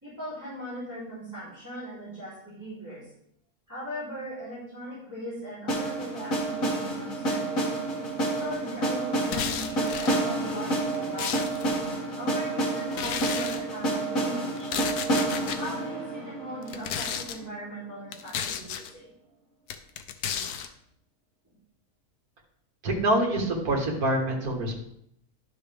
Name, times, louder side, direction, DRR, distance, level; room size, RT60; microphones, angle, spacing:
voice 1, 0.0-3.1 3.7-7.6 8.2-11.5 11.9-14.9 15.6-19.1, equal, 10° right, -11 dB, 3.5 m, -39 dB
sound 1, 5.7-17.6, right 2 dB, 65° left, 2.6 m, -29 dB
sound 2, 9.2-10.2 10.8-11.8 12.9-13.6 14.6-15.6 16.6-17.4 18.1-18.9 19.7-20.7, left 8 dB, 90° left, 1.2 m, -33 dB
voice 2, 22.8-24.8, right 1 dB, 75° right, 0 dB, 2.1 m, -26 dB
11.0 x 6.6 x 3.4 m, 0.72 s
omnidirectional pair, 1.6 m